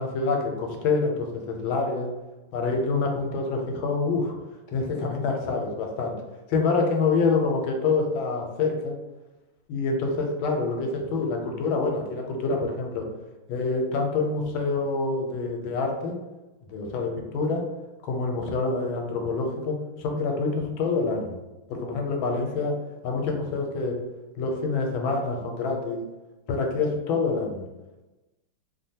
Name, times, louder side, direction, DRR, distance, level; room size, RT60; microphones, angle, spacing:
voice 1, 0.0-2.1 2.5-4.3 4.7-6.1 6.5-8.9 9.7-13.1 13.5-16.2 16.7-17.6 18.0-21.3 21.7-22.7 23.0-24.0 24.4-26.0 26.5-27.6, left 4 dB, 85° left, 2 dB, 1.4 m, -26 dB
3.3 x 2.2 x 2.7 m, 1.1 s
omnidirectional pair, 2.2 m